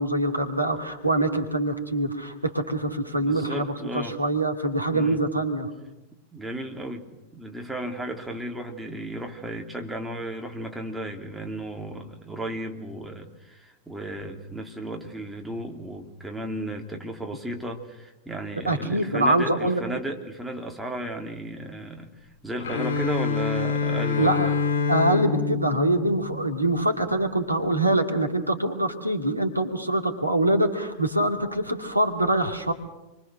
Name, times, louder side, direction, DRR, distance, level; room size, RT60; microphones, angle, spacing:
voice 1, 0.0-5.7 18.7-19.8 24.2-24.5 24.9-32.7, right 1 dB, 85° right, 5 dB, 2.3 m, -24 dB
voice 2, 3.1-4.2 4.9-5.2 6.3-7.1 7.3-24.6, right 1 dB, 5° right, 2 dB, 3.2 m, -34 dB
Bowed string instrument, 22.6-26.7, left 6 dB, 60° left, 5.5 m, -26 dB
28.5 x 23.5 x 6.5 m, 0.99 s
figure-of-eight pair, 90°, 0 cm